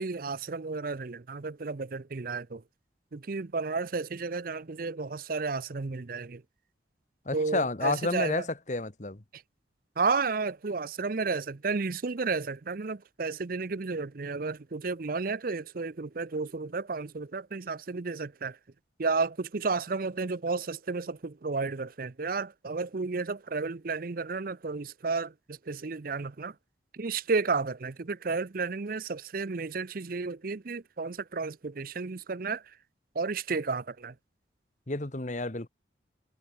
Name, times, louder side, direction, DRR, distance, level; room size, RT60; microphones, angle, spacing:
voice 1, 0.0-2.6 3.1-6.4 7.3-8.5 9.3-9.4 10.0-18.6 19.0-26.5 26.9-32.7 33.1-34.1, right 4 dB, 50° right, 0.6 m, -32 dB
voice 2, 7.2-9.2 34.9-35.7, left 2 dB, 40° left, 1.4 m, -30 dB
head